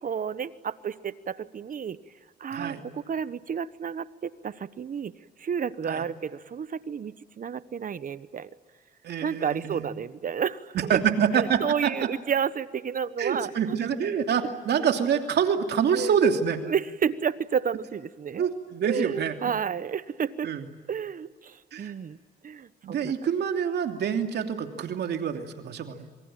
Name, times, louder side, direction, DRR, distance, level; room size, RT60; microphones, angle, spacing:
voice 1, 0.0-2.0 2.4-5.1 5.4-8.5 9.2-11.0 11.3-13.8 15.9-16.1 16.6-18.4 18.8-20.5 20.9-22.2 22.4-23.1, right 7 dB, 50° right, 15 dB, 1.2 m, -31 dB
voice 2, 2.5-2.8 5.9-6.1 9.0-9.9 10.9-11.9 13.2-16.6 18.4-19.3 20.4-20.6 21.7-21.9 22.8-26.0, right 7 dB, 75° right, 5 dB, 2.9 m, -26 dB
26.5 x 23.5 x 9.0 m, 1.4 s
cardioid pair, 75°, 17 cm